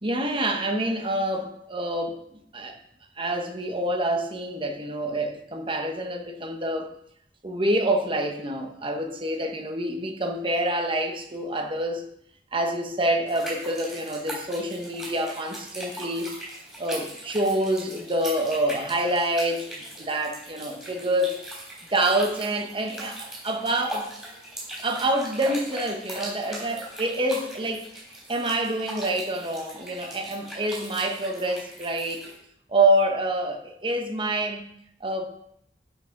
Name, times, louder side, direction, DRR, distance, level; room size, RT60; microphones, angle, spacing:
voice 1, 0.0-2.8 3.2-6.9 7.4-12.0 12.5-16.3 16.8-21.4 21.9-24.1 24.8-27.9 28.3-32.3 32.7-34.7 35.0-35.2, right 1 dB, 30° right, 1.2 m, -27 dB
sound 1, 13.3-32.4, right 1 dB, 5° right, 3.9 m, -39 dB
12.0 x 5.8 x 3.9 m
head